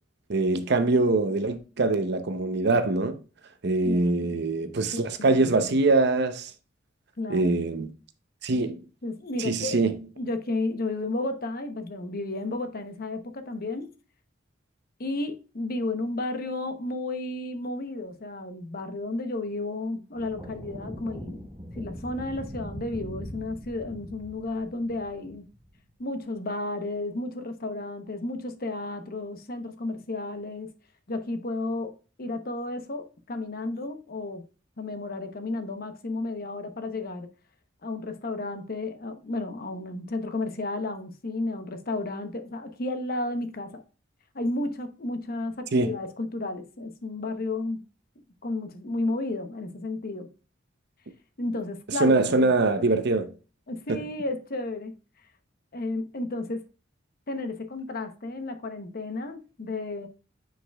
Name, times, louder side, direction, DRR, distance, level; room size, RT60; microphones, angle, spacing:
voice 1, 0.3-3.2 3.6-6.5 7.3-7.9 8.4-8.8 9.4-10.0 45.7-46.0 52.0-53.3 53.9-54.0, right 3 dB, 60° right, 0.7 m, -23 dB
voice 2, 3.8-4.4 4.9-5.7 7.2-7.7 9.0-9.8 10.2-13.9 15.0-21.5 21.7-25.4 26.0-30.7 31.1-34.4 34.8-37.3 37.8-43.8 44.3-47.8 48.4-50.3 51.4-52.5 53.7-54.9 55.7-56.6 57.3-60.1, left 2 dB, 50° left, 0.9 m, -32 dB
sound 1, 20.1-25.8, equal, 15° right, 1.9 m, -41 dB
9.1 x 5.0 x 2.3 m
head